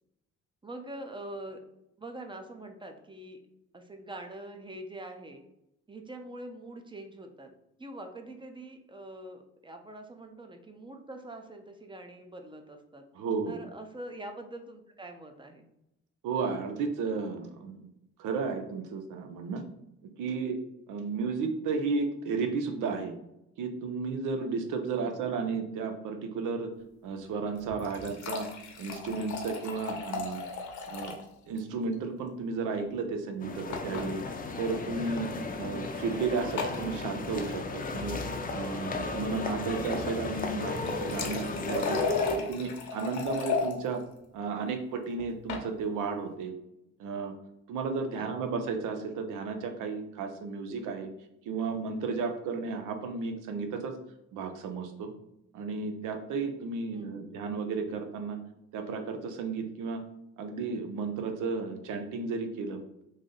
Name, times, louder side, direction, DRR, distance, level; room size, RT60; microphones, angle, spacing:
voice 1, 0.6-1.6 2.0-3.4 3.7-5.4 5.9-7.5 7.8-13.0 13.5-15.7 25.0-25.4 48.1-48.6 56.9-57.4, right 1 dB, 15° right, 5 dB, 0.5 m, -44 dB
voice 2, 13.1-13.6 16.2-17.9 18.2-19.6 20.2-20.6 20.9-23.1 23.6-26.7 27.0-28.5 28.8-30.4 30.9-31.1 31.5-34.2 34.6-35.3 35.6-38.2 38.5-42.0 42.5-44.0 44.3-46.5 47.0-47.3 47.7-51.1 51.5-53.9 54.3-55.1 55.5-58.4 58.7-60.0 60.4-62.8, right 4 dB, 90° right, 5 dB, 0.6 m, -33 dB
sound 1, 27.6-31.3 31.6-31.7 31.9-32.0 33.7-34.1 35.0-35.2 36.6-36.8 40.6-43.7 45.2-45.7, left 5 dB, 70° left, 0.8 m, -35 dB
sound 2, 33.4-42.4, left 3 dB, 30° left, 0.5 m, -34 dB
3.2 x 2.6 x 3.8 m, 0.83 s
cardioid pair, 90°, 30 cm